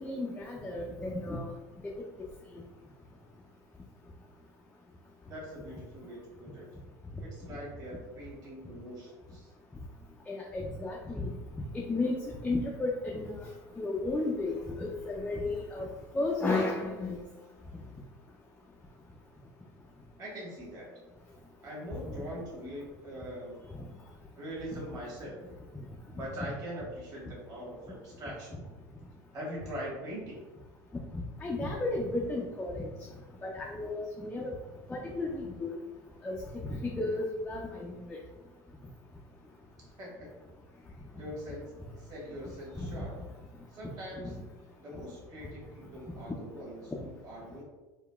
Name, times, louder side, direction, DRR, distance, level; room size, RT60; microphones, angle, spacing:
voice 1, 0.0-1.5 10.3-11.3 11.7-12.2 12.4-13.5 13.8-15.9 16.1-17.2 23.7-23.9 24.7-24.8 31.1-32.9 33.4-34.5 34.9-35.7 36.2-36.4 36.8-38.2 42.8-43.0 44.2-44.3, left 2 dB, 10° left, -2 dB, 0.3 m, -33 dB
voice 2, 5.3-6.7 7.2-9.5 20.2-20.9 21.6-23.5 24.3-25.4 26.1-28.6 29.3-30.4 39.8-40.3 41.2-41.6 42.0-43.2 43.7-44.3 44.8-47.6, equal, 35° right, -4 dB, 1.3 m, -42 dB
3.8 x 2.1 x 2.2 m, 1.2 s
supercardioid pair, 105°, 11 cm